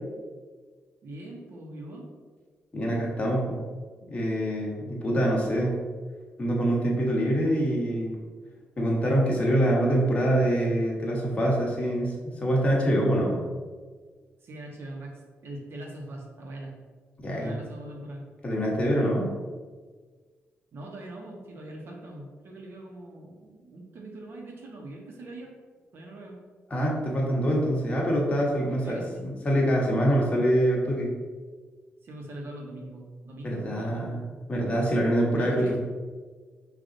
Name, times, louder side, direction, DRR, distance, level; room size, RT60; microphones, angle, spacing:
voice 1, 1.0-2.1 14.4-16.8 17.3-18.2 20.7-25.5 25.9-26.4 28.8-29.3 32.0-34.4 35.3-35.8, right 1 dB, 60° right, 0 dB, 1.0 m, -42 dB
voice 2, 2.7-3.6 4.1-5.8 6.4-8.2 8.8-13.4 17.2-17.5 18.4-19.3 26.7-31.1 33.4-34.2 34.5-35.8, equal, 30° left, -3 dB, 1.2 m, -25 dB
5.2 x 2.6 x 3.9 m, 1.5 s
cardioid pair, 120°, 4 cm